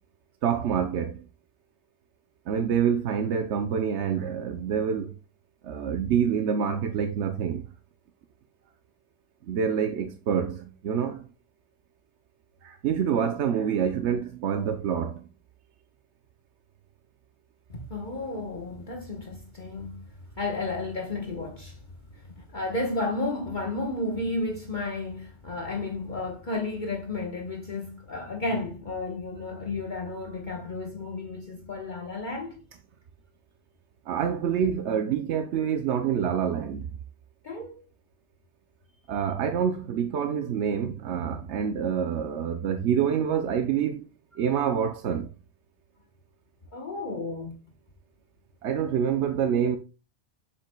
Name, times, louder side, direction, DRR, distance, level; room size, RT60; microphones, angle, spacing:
voice 1, 0.4-1.2 2.5-5.1 5.6-7.6 9.5-11.3 12.6-15.3 34.1-37.0 39.1-44.0 44.4-45.3 48.6-49.8, right 8 dB, 90° right, 1.0 m, -27 dB
voice 2, 17.7-21.8 22.1-32.6 37.4-37.7 46.7-47.6, left 2 dB, 45° left, 1.3 m, -32 dB
7.4 x 7.3 x 2.2 m
omnidirectional pair, 1.1 m